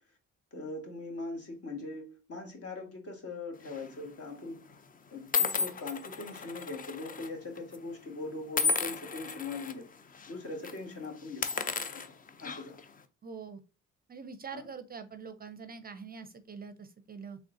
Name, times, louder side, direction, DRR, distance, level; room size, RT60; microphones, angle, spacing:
voice 1, 0.5-4.6 5.1-9.9 10.3-11.6 11.9-12.0 12.4-12.8 14.5-14.7, left 3 dB, 50° left, 1.5 m, -41 dB
sound 1, 3.7-4.0 4.7-4.8 5.3-7.3 7.6-7.8 8.5-9.7 10.1-10.3 10.6-10.8 11.3-12.8, left 4 dB, 30° left, 0.4 m, -33 dB
voice 2, 13.2-13.6 14.1-17.4, right 5 dB, 30° right, 0.5 m, -44 dB
3.8 x 3.3 x 2.5 m
cardioid pair, 90°, 30 cm